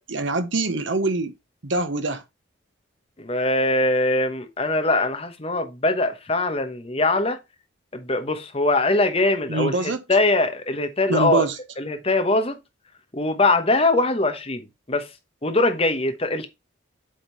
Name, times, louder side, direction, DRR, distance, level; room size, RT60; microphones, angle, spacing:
voice 1, 0.0-1.3 1.6-2.2 9.5-10.0 11.1-11.6, right 3 dB, 65° right, 1.0 m, -24 dB
voice 2, 3.2-7.4 7.9-11.5 11.8-12.6 13.1-14.6 14.9-15.1 15.4-16.5, left 2 dB, 30° left, 1.1 m, -22 dB
7.8 x 3.7 x 4.5 m
head